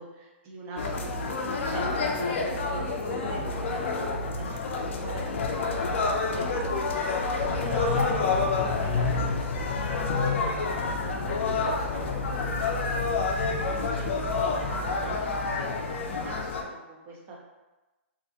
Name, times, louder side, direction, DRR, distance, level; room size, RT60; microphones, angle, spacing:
voice 1, 0.0-17.4, right 2 dB, 30° right, -2 dB, 0.6 m, -41 dB
sound 1, 0.8-16.6, left 4 dB, 70° left, 0.4 m, -28 dB
sound 2, 4.5-15.5, right 6 dB, 20° left, 0.6 m, -42 dB
2.4 x 2.1 x 2.7 m, 1.1 s
hypercardioid pair, 130°, 7 cm